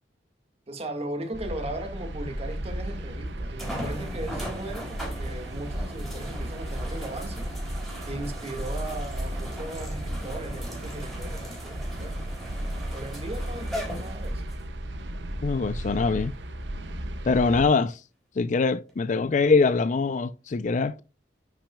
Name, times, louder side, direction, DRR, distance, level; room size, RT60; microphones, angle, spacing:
voice 1, 0.7-7.5 8.0-12.2 12.9-14.5, right 1 dB, 35° right, 1.7 m, -37 dB
sound 1, 1.3-17.7, right 1 dB, 85° right, 0.9 m, -34 dB
sound 2, 2.5-2.6 3.6-14.6 15.3-15.4 18.9-19.0, equal, ahead, 4.0 m, -39 dB
voice 2, 15.4-16.3 17.2-18.0 18.4-21.0, left 4 dB, 45° left, 0.4 m, -23 dB
10.0 x 6.0 x 2.3 m
head